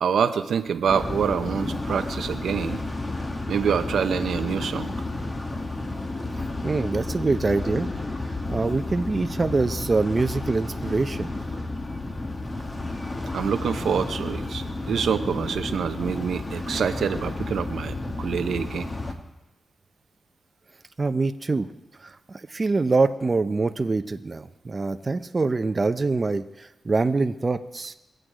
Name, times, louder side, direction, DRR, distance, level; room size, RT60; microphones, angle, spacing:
voice 1, 0.0-2.8 3.5-4.9 13.3-18.9, right 7 dB, 85° right, 8 dB, 0.7 m, -26 dB
sound 1, 0.9-19.1, left 2 dB, 35° left, 1.7 m, -31 dB
voice 2, 6.6-7.9 8.5-11.3 21.0-21.7 22.0-27.9, right 3 dB, 40° right, 9 dB, 0.6 m, -24 dB
22.5 x 7.9 x 5.0 m, 0.98 s
cardioid pair, 70°, 0 cm